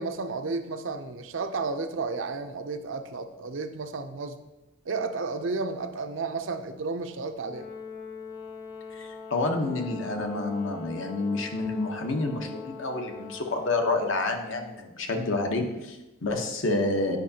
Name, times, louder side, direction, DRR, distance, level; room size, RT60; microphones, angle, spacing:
voice 1, 0.0-4.4 4.9-7.7, right 4 dB, 70° right, 8 dB, 0.5 m, -32 dB
Brass instrument, 7.4-13.8, left 5 dB, 45° left, 1.1 m, -42 dB
voice 2, 8.9-17.2, left 2 dB, 70° left, 4 dB, 0.9 m, -29 dB
9.1 x 5.5 x 2.8 m, 0.99 s
head